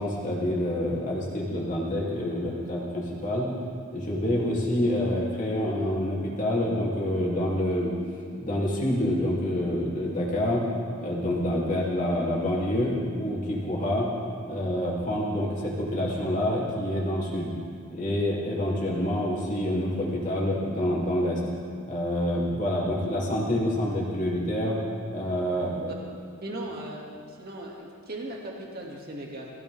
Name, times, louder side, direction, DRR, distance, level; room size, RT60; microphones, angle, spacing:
voice 1, 0.0-3.5 3.9-7.9 8.4-10.6 11.0-14.1 14.5-17.5 17.9-21.4 21.9-24.8 25.1-25.9, left 1 dB, 35° left, -5 dB, 2.9 m, -27 dB
voice 2, 26.4-29.5, right 1 dB, 45° right, -2 dB, 2.4 m, -38 dB
20.5 x 15.5 x 3.6 m, 2.3 s
head